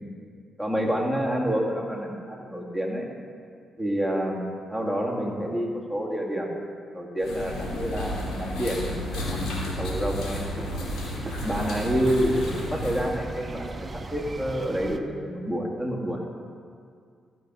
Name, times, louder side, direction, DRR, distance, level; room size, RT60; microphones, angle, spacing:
voice 1, 0.6-3.1 3.8-6.6 6.9-10.5 11.4-16.2, equal, 5° left, -1 dB, 2.1 m, -28 dB
sound 1, 7.2-13.2, left 1 dB, 80° left, 2.8 m, -32 dB
sound 2, 9.9-15.0, right 3 dB, 35° right, 0.7 m, -39 dB
14.5 x 6.2 x 5.6 m, 2.2 s
cardioid pair, 75°, 0 cm